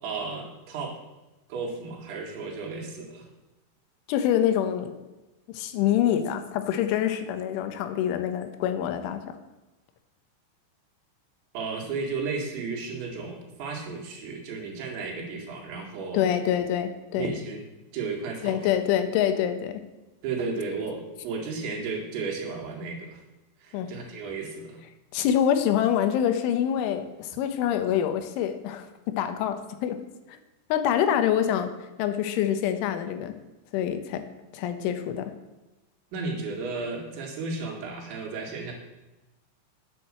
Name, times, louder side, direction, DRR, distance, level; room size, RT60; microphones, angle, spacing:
voice 1, 0.0-1.0 1.5-3.3 11.5-16.3 17.1-17.6 17.9-18.6 20.2-23.2 23.6-24.8 36.1-38.7, right 4 dB, 70° right, 0 dB, 4.1 m, -33 dB
voice 2, 4.1-5.0 5.5-9.4 16.1-17.3 18.4-19.8 23.7-23.9 25.1-30.0 30.3-30.4 30.7-31.7 32.0-33.3 33.7-34.3 34.5-35.3, left 10 dB, 80° left, 9 dB, 3.2 m, -26 dB
8.9 x 8.4 x 7.4 m, 1.1 s
omnidirectional pair, 5.6 m